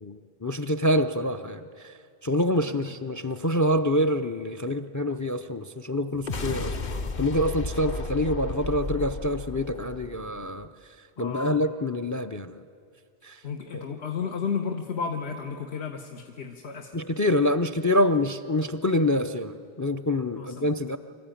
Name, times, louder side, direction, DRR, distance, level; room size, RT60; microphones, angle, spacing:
voice 1, 0.0-1.6 2.2-6.7 7.2-10.7 11.2-12.5 13.2-13.4 13.7-13.9 16.9-21.0, left 1 dB, 30° left, 11 dB, 0.3 m, -26 dB
sound 1, 6.1-10.7, left 3 dB, 50° left, 0.9 m, -33 dB
voice 2, 11.2-11.6 13.4-16.9 20.4-20.7, left 6 dB, 85° left, 3 dB, 1.3 m, -33 dB
25.0 x 14.5 x 9.1 m, 2.3 s
omnidirectional pair, 1.1 m